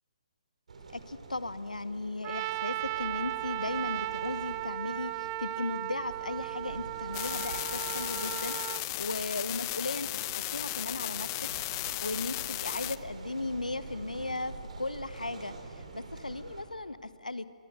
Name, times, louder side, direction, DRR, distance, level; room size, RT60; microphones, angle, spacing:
sound 1, 0.7-16.6, right 3 dB, 65° right, 4.5 m, -47 dB
voice 1, 0.9-11.3 11.6-11.7 12.0-17.4, left 2 dB, 85° left, 14 dB, 1.0 m, -37 dB
Trumpet, 2.2-8.8, right 18 dB, 25° right, 0.5 m, -36 dB
sound 2, 7.1-13.0, left 18 dB, 30° left, 0.7 m, -35 dB
24.5 x 23.0 x 8.1 m, 2.4 s
figure-of-eight pair, 135°, 4 cm